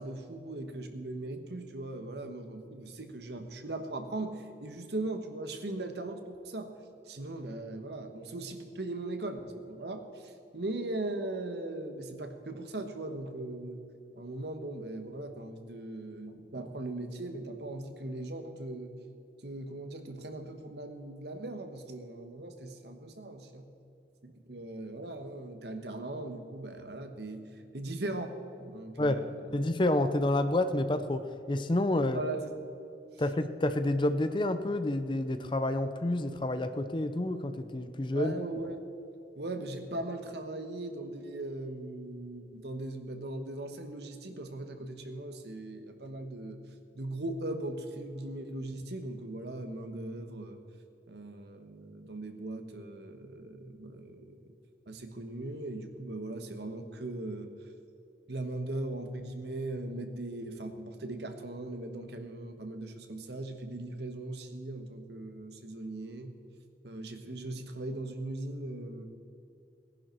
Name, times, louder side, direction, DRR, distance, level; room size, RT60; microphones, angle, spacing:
voice 1, 0.0-6.7 7.0-13.8 14.1-18.9 19.4-23.7 24.2-29.6 32.1-32.5 33.1-33.2 38.1-38.8 39.4-46.6 46.9-50.6 51.1-54.5 54.9-57.5 58.3-66.4 66.8-69.1, right 2 dB, 70° right, 6 dB, 1.3 m, -39 dB
voice 2, 29.5-32.2 33.2-38.3, left 1 dB, 25° left, 10 dB, 0.6 m, -29 dB
18.0 x 10.5 x 4.6 m, 2.7 s
head